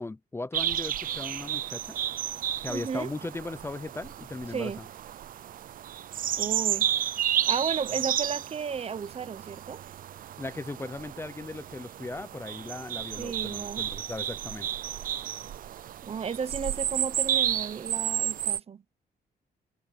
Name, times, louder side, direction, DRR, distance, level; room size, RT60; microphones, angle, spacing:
voice 1, 0.0-2.0 2.6-4.8 10.4-14.7, left 2 dB, 15° left, 0.6 m, -38 dB
sound 1, 0.5-18.6, right 11 dB, 55° right, 0.5 m, -32 dB
voice 2, 2.7-3.1 4.5-4.8 6.4-6.9 7.5-9.8 13.2-13.9 16.0-18.8, right 6 dB, 40° right, 0.8 m, -33 dB
cardioid pair, 130°, 17 cm